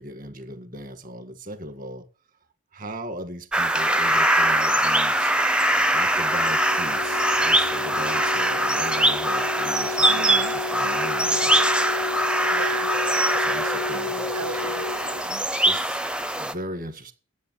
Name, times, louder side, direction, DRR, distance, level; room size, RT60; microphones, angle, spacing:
voice 1, 0.0-2.1 2.7-5.3 5.9-11.7 13.3-14.7 15.7-16.0 16.4-17.1, equal, 40° right, 1.6 m, -38 dB
sound 1, 3.5-16.5, right 1 dB, 5° right, 0.5 m, -22 dB
sound 2, 6.2-15.2, left 3 dB, 80° left, 0.5 m, -32 dB
voice 2, 10.0-10.6 12.5-12.9 13.9-14.0 14.3-15.5, right 6 dB, 90° right, 1.0 m, -36 dB
10.5 x 8.0 x 8.1 m
head